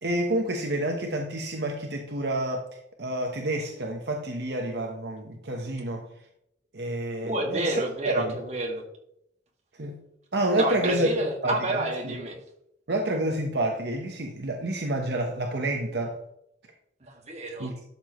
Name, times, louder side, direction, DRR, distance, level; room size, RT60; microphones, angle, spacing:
voice 1, 0.0-2.7 3.0-6.1 6.7-7.8 8.0-8.4 9.8-10.0 10.3-11.1 11.4-12.2 12.9-16.2 17.6-17.8, right 1 dB, 65° right, 2 dB, 1.1 m, -29 dB
voice 2, 7.2-8.8 10.6-12.4 17.0-17.7, right 1 dB, 40° right, 0 dB, 2.2 m, -29 dB
12.0 x 7.0 x 3.1 m, 0.76 s
head